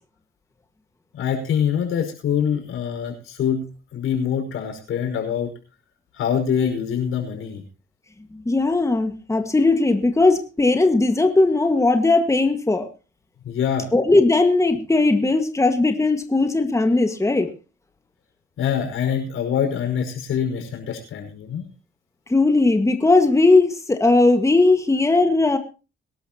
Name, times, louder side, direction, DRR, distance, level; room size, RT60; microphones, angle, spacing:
voice 1, 1.1-3.6 3.9-5.5 6.1-7.6 13.4-13.9 18.6-21.6, left 8 dB, 85° left, 3 dB, 5.3 m, -24 dB
voice 2, 8.5-12.9 13.9-17.5 22.3-25.6, left 2 dB, 15° left, 7 dB, 1.7 m, -18 dB
22.0 x 12.0 x 2.9 m, 0.33 s
cardioid pair, 90°, 21 cm